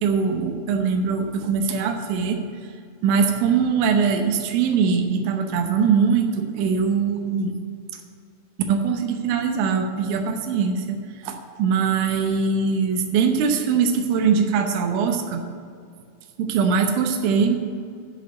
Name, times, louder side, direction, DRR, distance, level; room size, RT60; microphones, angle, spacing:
voice 1, 0.0-2.4 3.0-7.6 8.7-11.0 11.2-15.4 16.4-17.6, right 6 dB, 85° right, 4 dB, 3.3 m, -22 dB
11.5 x 5.4 x 8.0 m, 2.3 s
omnidirectional pair, 5.4 m